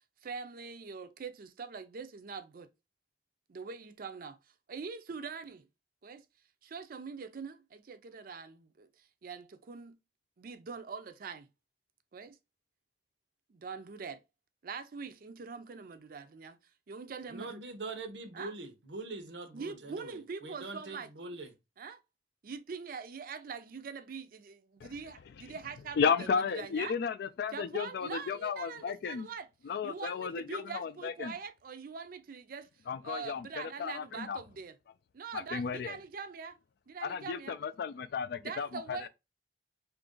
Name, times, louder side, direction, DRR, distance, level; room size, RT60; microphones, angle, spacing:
voice 1, 0.2-2.7 3.5-4.4 4.7-5.7 6.0-6.2 6.6-10.0 10.4-11.5 12.1-12.4 13.5-14.2 14.6-16.6 16.9-17.6 18.3-18.5 19.5-21.1 21.8-22.0 22.4-27.0 27.5-29.5 29.8-32.7 33.0-34.7 35.1-36.6 36.9-37.6 38.4-39.1, right 5 dB, 55° right, 0.5 m, -43 dB
voice 2, 17.3-21.5, right 3 dB, 90° right, 0.8 m, -43 dB
voice 3, 26.0-29.3 29.6-31.3 32.9-34.4 35.3-36.0 37.0-39.1, left 6 dB, 60° left, 0.3 m, -34 dB
2.9 x 2.5 x 3.7 m
head